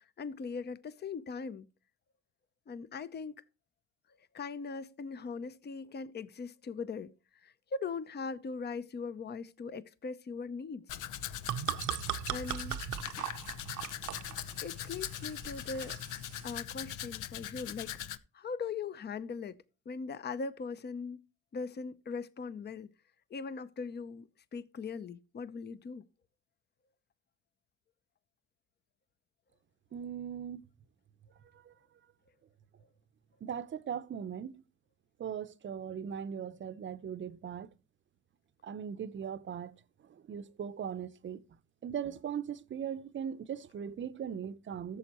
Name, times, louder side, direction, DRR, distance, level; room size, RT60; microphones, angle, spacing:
voice 1, 0.0-1.7 2.7-3.4 4.3-7.1 7.4-11.0 12.3-12.8 14.6-16.0 16.4-17.9 18.3-19.6 19.9-21.2 21.5-22.9 23.3-26.0, left 5 dB, 35° left, 0.7 m, -40 dB
Domestic sounds home sounds, 10.9-18.2, left 11 dB, 85° left, 0.7 m, -41 dB
sound 1, 11.1-16.6, right 12 dB, 80° right, 0.8 m, -39 dB
voice 2, 29.9-30.6 31.5-31.7 33.4-34.6 35.2-37.7 38.6-39.7 40.0-41.4 41.8-45.0, right 8 dB, 40° right, 0.7 m, -39 dB
13.5 x 6.9 x 3.0 m
cardioid pair, 90°, 30 cm